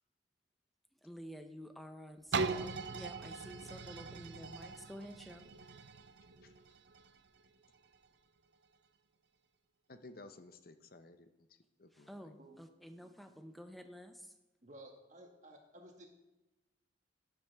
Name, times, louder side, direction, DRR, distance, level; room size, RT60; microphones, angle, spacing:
voice 1, 1.0-5.5 11.9-14.3, equal, ahead, 6 dB, 0.7 m, -51 dB
sound 1, 2.3-8.1 8.6-8.7, right 4 dB, 70° right, 0.6 m, -41 dB
voice 2, 9.9-12.3, left 2 dB, 50° left, 9 dB, 0.7 m, -56 dB
voice 3, 14.6-16.1, right 1 dB, 40° right, 2 dB, 1.8 m, -55 dB
12.0 x 10.5 x 3.5 m, 1.0 s
head